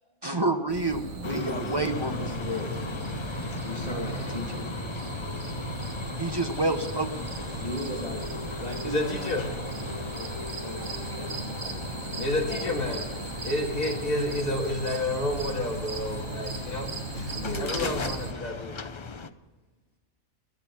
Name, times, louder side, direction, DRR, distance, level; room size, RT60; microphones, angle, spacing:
voice 1, 0.2-2.6 6.2-7.5 17.8-18.0, right 2 dB, 20° right, 6 dB, 0.8 m, -29 dB
sound 1, 0.7-18.3, right 3 dB, 55° right, 1.7 m, -37 dB
sound 2, 1.2-19.3, left 4 dB, 50° left, 0.3 m, -38 dB
voice 2, 1.2-2.7 3.1-4.7 7.5-8.2 8.6-9.5 9.9-12.9 14.7-15.2 17.4-17.7, left 1 dB, 30° left, -1 dB, 2.1 m, -38 dB
sound 3, 2.1-9.4, left 1 dB, 80° right, 6.0 m, -49 dB
voice 3, 8.8-9.4 12.2-13.1 13.4-18.8, left 1 dB, 75° left, -2 dB, 2.5 m, -30 dB
14.0 x 11.5 x 7.2 m, 1.3 s
omnidirectional pair, 1.4 m